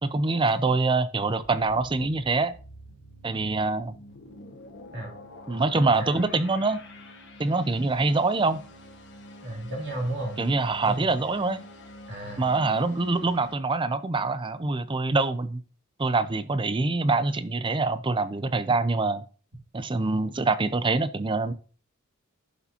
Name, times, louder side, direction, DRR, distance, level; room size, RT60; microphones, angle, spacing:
voice 1, 0.0-2.5 3.2-4.0 5.5-6.8 7.4-8.6 10.4-11.6 12.4-15.6 16.0-19.2 19.7-21.5, right 3 dB, 20° right, 0.5 m, -25 dB
sound 1, 1.4-13.6, left 1 dB, 55° left, 1.6 m, -47 dB
voice 2, 5.7-6.1 9.4-10.4 10.8-11.1 12.1-12.5, right 1 dB, 55° right, 2.5 m, -33 dB
11.0 x 6.9 x 2.9 m
head